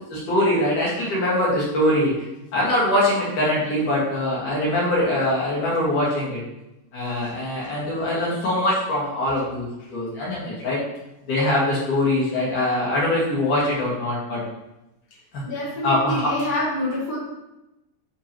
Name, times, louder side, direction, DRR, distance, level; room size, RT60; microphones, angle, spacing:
voice 1, 0.1-2.1 2.5-6.4 6.9-10.8 11.3-14.4 15.8-16.3, left 1 dB, 60° left, -6 dB, 2.7 m, -22 dB
voice 2, 15.4-17.2, left 1 dB, 30° left, -8 dB, 0.8 m, -26 dB
10.0 x 3.8 x 2.9 m, 0.95 s
omnidirectional pair, 4.7 m